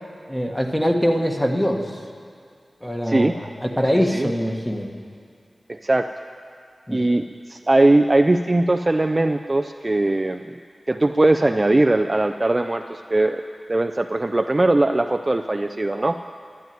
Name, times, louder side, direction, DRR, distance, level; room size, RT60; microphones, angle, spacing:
voice 1, 0.3-1.8 2.8-4.9 6.9-7.0, equal, 10° left, 2 dB, 1.4 m, -23 dB
voice 2, 3.9-4.3 5.7-6.1 6.9-10.6 10.9-16.2, right 2 dB, 30° right, 7 dB, 0.4 m, -20 dB
12.0 x 10.5 x 9.3 m, 2.3 s
wide cardioid pair, 105°, 0 cm